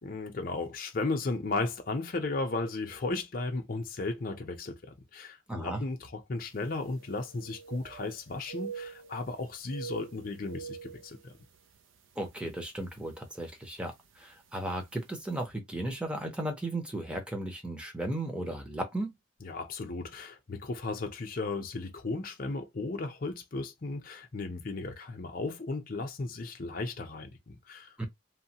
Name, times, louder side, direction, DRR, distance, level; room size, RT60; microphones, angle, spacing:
voice 1, 0.0-11.3 19.4-28.1, left 3 dB, 45° left, 0.6 m, -35 dB
voice 2, 5.5-5.8 12.2-19.1 28.0-28.1, right 1 dB, 5° right, 0.7 m, -35 dB
sound 1, 6.5-6.6 6.9-8.2 8.4-9.4 9.6-11.8 12.2-12.4 13.0-13.3 14.3-14.4 14.8-14.9, right 7 dB, 75° right, 0.5 m, -44 dB
3.1 x 2.1 x 2.8 m
head